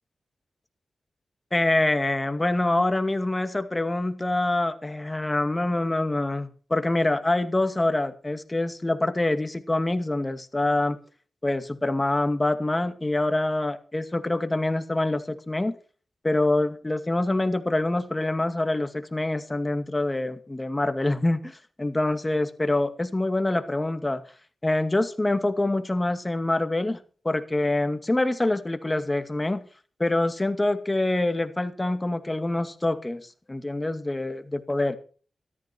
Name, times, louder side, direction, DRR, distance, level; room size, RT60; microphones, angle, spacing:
voice 1, 1.5-11.0 11.4-15.8 16.2-24.2 24.6-27.0 27.2-29.6 30.0-35.0, left 2 dB, 25° left, 10 dB, 2.2 m, -25 dB
14.0 x 13.5 x 4.6 m, 0.40 s
cardioid pair, 45°, 0 cm